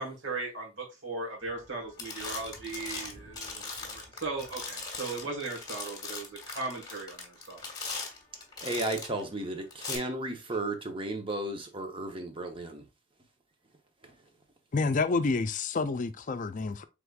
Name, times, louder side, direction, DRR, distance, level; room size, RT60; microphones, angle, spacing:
voice 1, 0.0-7.6, right 3 dB, 80° right, 1.6 m, -38 dB
sound 1, 1.5-1.7 2.0-9.2 9.7-10.0, left 4 dB, 20° left, 1.4 m, -40 dB
voice 2, 8.6-12.8 14.0-14.1, right 2 dB, 30° right, 0.8 m, -34 dB
voice 3, 14.7-16.8, left 3 dB, 40° left, 0.4 m, -28 dB
4.9 x 3.5 x 2.3 m
head